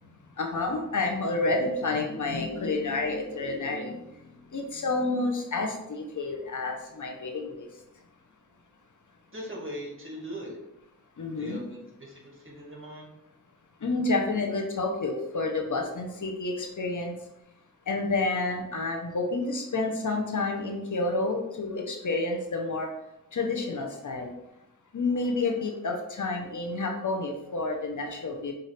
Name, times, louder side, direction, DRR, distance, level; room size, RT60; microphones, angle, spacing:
voice 1, 0.4-4.0 4.5-7.7 11.2-11.6 13.8-17.2 17.9-22.9 23.3-24.3 24.9-28.5, left 3 dB, 55° left, 3 dB, 0.8 m, -29 dB
voice 2, 9.3-10.6 11.4-13.1, equal, 35° right, -2 dB, 1.6 m, -40 dB
5.7 x 2.6 x 3.2 m, 0.86 s
cardioid pair, 45°, 35 cm